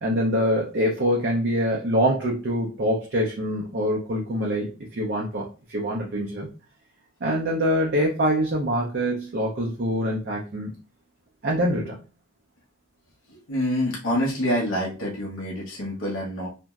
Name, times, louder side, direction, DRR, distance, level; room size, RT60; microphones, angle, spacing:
voice 1, 0.0-6.5 7.2-10.8 11.4-12.0, equal, 55° right, -2 dB, 0.5 m, -25 dB
voice 2, 13.3-16.5, equal, 90° left, -4 dB, 0.8 m, -27 dB
3.0 x 2.6 x 2.3 m, 0.33 s
head